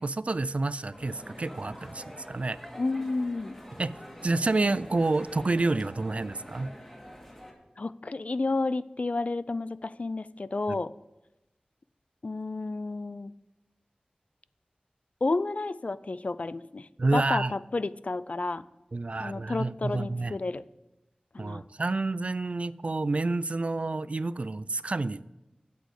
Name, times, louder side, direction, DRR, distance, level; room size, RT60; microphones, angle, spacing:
voice 1, 0.0-2.6 3.8-3.9 4.2-6.7 10.7-10.8 17.0-17.5 18.9-20.3 21.4-25.2, right 3 dB, 50° right, 18 dB, 0.3 m, -29 dB
sound 1, 0.9-7.5, equal, 10° left, 2.1 m, -46 dB
voice 2, 2.8-3.6 7.8-10.9 12.2-13.3 15.2-18.6 19.2-20.6 21.3-21.6, left 3 dB, 55° left, 17 dB, 0.3 m, -31 dB
8.1 x 6.2 x 8.2 m, 0.96 s
wide cardioid pair, 65°, 3 cm